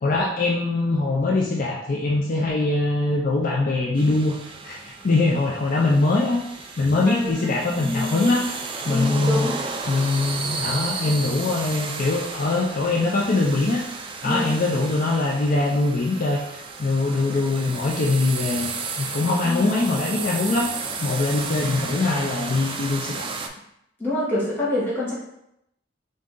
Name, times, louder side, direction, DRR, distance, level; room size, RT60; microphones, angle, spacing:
voice 1, 0.0-4.3 4.6-6.4 6.8-8.5 8.8-9.5 9.9-13.8 14.2-18.7 19.0-20.7 21.0-23.3, left 2 dB, 45° left, -3 dB, 0.4 m, -22 dB
sound 1, 4.0-23.5, right 4 dB, 30° right, 0.3 m, -33 dB
voice 2, 7.1-7.5 7.8-8.3 8.9-9.6 14.2-14.5 19.4-19.6 24.0-25.1, left 1 dB, 10° left, -8 dB, 1.3 m, -26 dB
3.8 x 2.6 x 3.6 m, 0.80 s
head